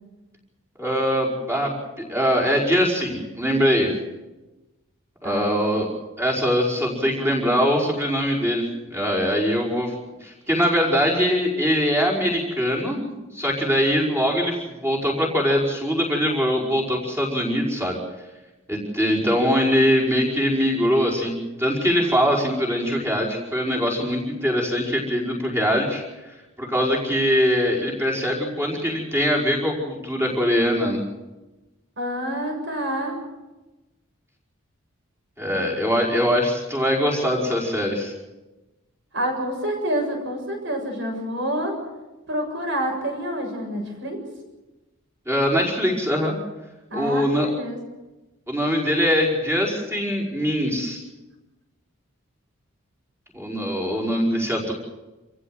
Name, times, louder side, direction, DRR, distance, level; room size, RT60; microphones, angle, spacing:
voice 1, 0.8-1.7 2.1-3.9 5.2-5.9 6.2-9.9 10.2-18.0 18.7-31.0 35.4-38.1 45.3-46.3 46.9-47.5 48.5-51.0 53.3-54.7, equal, 15° right, -3 dB, 5.3 m, -22 dB
voice 2, 32.0-33.2 39.1-41.7 42.3-44.2 46.9-47.8, equal, 60° right, 3 dB, 7.2 m, -27 dB
28.0 x 15.5 x 8.0 m, 1.1 s
head